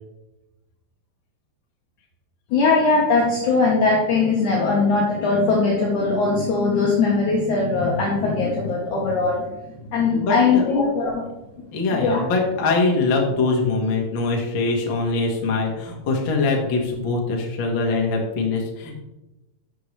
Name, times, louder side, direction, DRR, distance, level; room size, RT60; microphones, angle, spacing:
voice 1, 2.5-9.5 9.8-11.2 11.9-12.2, left 4 dB, 65° left, -2 dB, 2.3 m, -20 dB
voice 2, 10.0-10.6 11.7-19.0, left 3 dB, 45° left, 0 dB, 1.6 m, -23 dB
12.0 x 6.8 x 3.3 m, 0.99 s
omnidirectional pair, 4.5 m